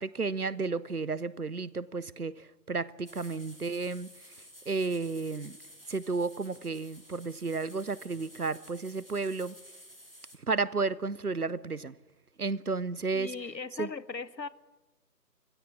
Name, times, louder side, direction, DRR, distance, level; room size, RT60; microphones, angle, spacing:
voice 1, 0.0-4.1 4.7-5.6 5.9-9.6 10.5-12.0 12.4-13.3 13.8-13.9, right 4 dB, 65° right, 0.7 m, -32 dB
sound 1, 3.0-10.4, equal, 35° right, 1.6 m, -53 dB
voice 2, 13.1-14.5, left 4 dB, 90° left, 1.0 m, -38 dB
19.5 x 16.0 x 8.5 m
figure-of-eight pair, 175°, 50 cm